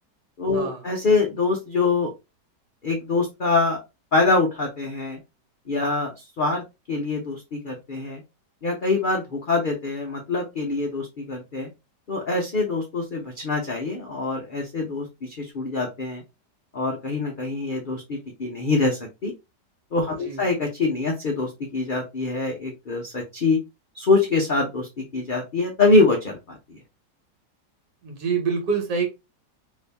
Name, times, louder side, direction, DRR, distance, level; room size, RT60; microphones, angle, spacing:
voice 1, 0.4-2.1 2.8-3.8 4.1-5.2 5.7-6.6 6.9-8.2 8.6-11.7 12.1-16.2 16.7-19.3 19.9-23.6 23.9-26.8, left 3 dB, 80° left, 0.4 m, -24 dB
voice 2, 28.0-29.1, right 5 dB, 75° right, 1.6 m, -26 dB
2.9 x 2.7 x 3.3 m
omnidirectional pair, 1.9 m